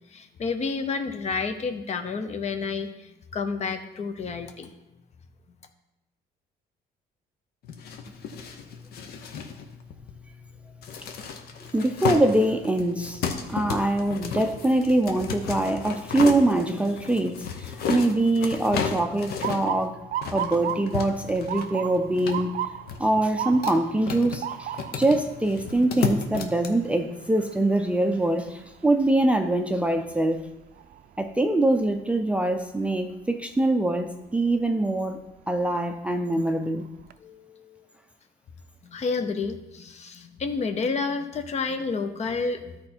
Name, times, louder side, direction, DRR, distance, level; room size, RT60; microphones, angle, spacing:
voice 1, 0.1-4.7 37.2-37.9 38.8-42.8, left 4 dB, 40° left, 8 dB, 0.9 m, -30 dB
sound 1, 7.6-26.7, left 6 dB, 70° left, 1.0 m, -34 dB
voice 2, 11.7-13.2 13.5-20.0 20.3-22.5 23.0-24.7 25.0-30.5 31.2-35.2 35.5-36.9, right 1 dB, 5° right, 5 dB, 0.5 m, -24 dB
Motor vehicle (road) / Siren, 19.4-31.3 31.8-32.2 33.0-33.3 35.2-35.4 35.9-36.0 36.4-37.1, right 11 dB, 60° right, 0.5 m, -36 dB
13.0 x 4.3 x 4.4 m, 0.97 s
cardioid pair, 110°, 17 cm